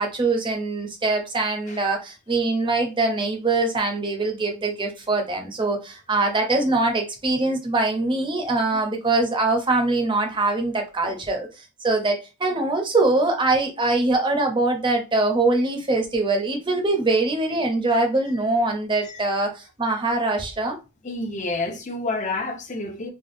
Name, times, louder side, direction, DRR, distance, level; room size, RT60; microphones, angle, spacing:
voice 1, 0.0-20.8, right 2 dB, 25° right, 0.6 m, -23 dB
voice 2, 21.0-23.1, left 2 dB, 35° left, 0.5 m, -30 dB
3.4 x 2.2 x 2.6 m
head